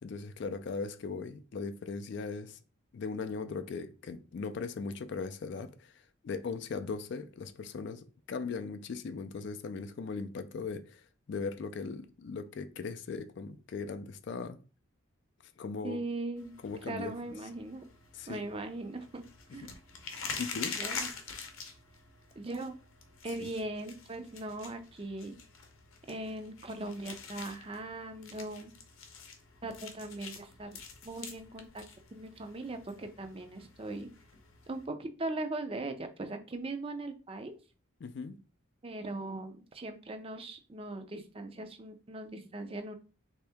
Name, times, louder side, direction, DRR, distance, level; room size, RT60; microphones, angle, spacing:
voice 1, 0.0-2.6 2.9-14.6 15.6-16.0 16.6-17.1 18.1-18.4 19.5-19.7 20.4-20.8 23.4-23.5 38.0-38.4, left 4 dB, 55° left, 0.3 m, -39 dB
voice 2, 15.8-16.6 16.8-17.8 18.3-19.2 19.5-19.7 20.8-21.1 22.4-22.7 23.2-25.4 26.1-28.7 29.6-30.8 31.0-31.8 32.1-34.1 34.7-37.5 38.8-43.0, right 2 dB, 25° right, 0.4 m, -39 dB
sound 1, 16.4-34.9, left 5 dB, 70° left, 0.7 m, -46 dB
3.4 x 2.8 x 3.4 m
head